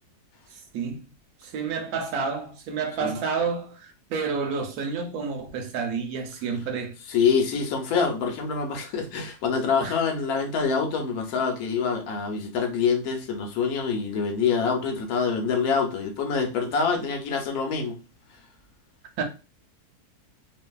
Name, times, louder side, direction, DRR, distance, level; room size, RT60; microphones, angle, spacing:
voice 1, 0.5-1.1 1.4-6.9 9.8-10.0 19.2-19.3, right 5 dB, 75° right, 1.1 m, -30 dB
voice 2, 7.1-18.0, left 5 dB, 75° left, 1.1 m, -25 dB
2.6 x 2.5 x 2.2 m
omnidirectional pair, 1.6 m